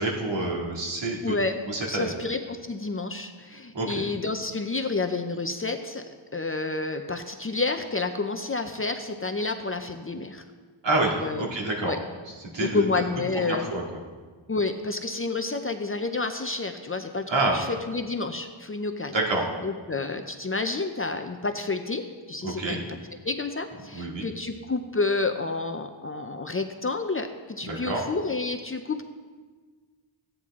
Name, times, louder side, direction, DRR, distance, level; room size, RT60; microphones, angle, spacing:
voice 1, 0.0-1.3 1.7-2.1 3.7-4.0 10.8-11.9 12.5-12.8 13.4-13.8 17.3-17.6 19.1-19.4 22.4-22.8 23.9-24.3 27.6-28.0, right 2 dB, 60° right, -1 dB, 2.4 m, -27 dB
voice 2, 1.2-10.4 11.0-11.5 11.8-12.0 12.6-13.6 14.5-19.2 19.6-22.8 23.2-29.0, left 3 dB, 25° left, 6 dB, 0.6 m, -30 dB
15.5 x 9.4 x 3.7 m, 1.5 s
wide cardioid pair, 115°, 49 cm